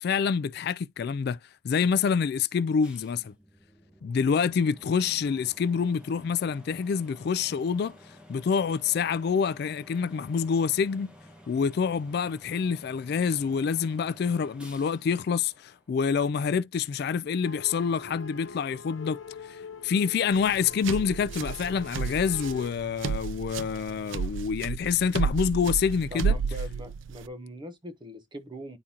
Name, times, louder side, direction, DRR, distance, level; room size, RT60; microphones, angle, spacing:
voice 1, 0.0-1.4 1.6-3.3 4.0-8.0 8.3-11.1 11.5-19.2 19.5-19.6 19.8-26.3, left 6 dB, 55° left, 0.3 m, -27 dB
sound 1, 2.8-16.3, equal, 5° right, 1.1 m, -53 dB
sound 2, 17.4-22.7, left 4 dB, 85° left, 0.7 m, -44 dB
sound 3, 20.3-27.3, right 6 dB, 75° right, 0.4 m, -32 dB
voice 2, 26.1-28.8, equal, 25° right, 0.9 m, -41 dB
9.9 x 3.7 x 2.8 m
head